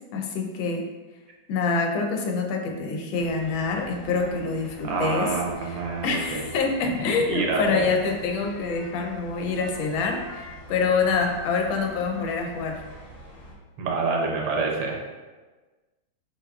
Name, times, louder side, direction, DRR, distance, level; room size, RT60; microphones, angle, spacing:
voice 1, 0.1-0.8 1.5-5.3 5.6-12.8, left 4 dB, 80° left, 2 dB, 1.4 m, -26 dB
sound 1, 3.1-13.5, left 1 dB, 60° left, 0.9 m, -44 dB
Guitar, 4.8-8.7, right 2 dB, 10° left, 0.9 m, -43 dB
voice 2, 4.8-6.5 7.3-7.9 13.8-15.1, right 4 dB, 75° right, -1 dB, 1.3 m, -27 dB
5.0 x 3.5 x 2.3 m, 1.3 s
omnidirectional pair, 2.2 m